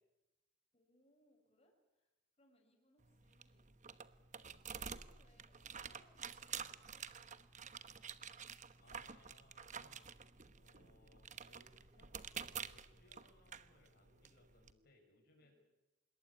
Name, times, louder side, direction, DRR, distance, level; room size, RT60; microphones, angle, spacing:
voice 1, 0.7-3.7 4.3-7.0 10.7-10.9 15.4-15.5, left 1 dB, 30° left, 2 dB, 6.6 m, -74 dB
sound 1, 3.0-14.7, right 7 dB, 40° right, 1.1 m, -50 dB
voice 2, 8.8-10.2 10.6-15.5, left 1 dB, 55° left, 1 dB, 6.2 m, -69 dB
26.0 x 21.5 x 8.6 m, 1.0 s
head